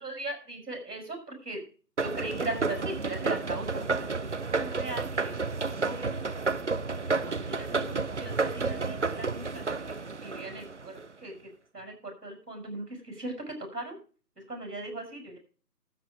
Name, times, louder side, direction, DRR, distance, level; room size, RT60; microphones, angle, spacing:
voice 1, 0.0-1.6 2.0-6.1 7.2-14.0 14.4-15.4, right 2 dB, 70° right, 3 dB, 6.9 m, -39 dB
sound 1, 2.0-11.1, right 4 dB, 45° right, 0.6 m, -31 dB
13.0 x 9.3 x 5.0 m, 0.39 s
figure-of-eight pair, 165°, 49 cm